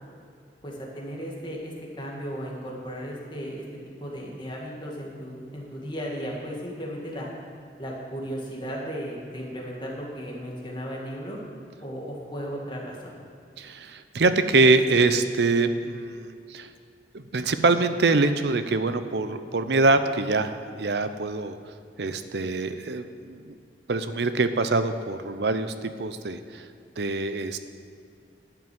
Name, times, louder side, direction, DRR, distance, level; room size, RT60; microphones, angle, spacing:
voice 1, 0.6-3.6 4.0-7.3 7.8-11.4 11.8-13.2, equal, 25° left, -3 dB, 2.0 m, -35 dB
voice 2, 13.6-16.7 17.1-21.6 22.0-23.5 23.9-26.7 27.0-27.6, right 3 dB, 70° right, 10 dB, 0.6 m, -24 dB
11.5 x 6.1 x 7.7 m, 2.4 s
head